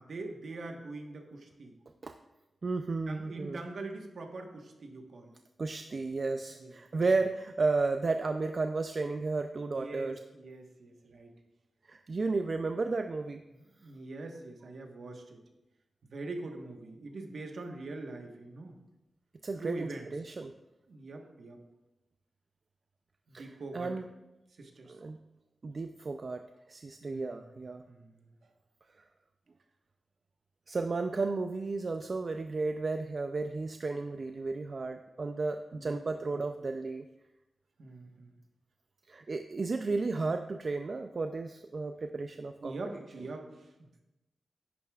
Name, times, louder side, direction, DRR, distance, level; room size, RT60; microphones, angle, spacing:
voice 1, 0.0-1.7 3.1-5.3 6.6-7.0 9.7-11.3 13.5-15.4 16.1-18.8 19.6-20.1 20.9-21.6 23.3-23.9 24.6-25.0 27.0-27.6 27.9-28.3 35.7-36.0 36.3-36.4 37.8-38.4 42.6-44.0, right 2 dB, 60° right, 3 dB, 1.2 m, -43 dB
voice 2, 2.6-3.6 5.6-10.2 11.9-13.4 19.4-20.5 23.3-23.5 23.7-24.0 24.9-25.2 25.6-27.8 30.7-37.0 39.1-42.8, right 3 dB, 40° right, 6 dB, 0.4 m, -33 dB
11.0 x 9.4 x 2.4 m, 0.98 s
wide cardioid pair, 135°, 0 cm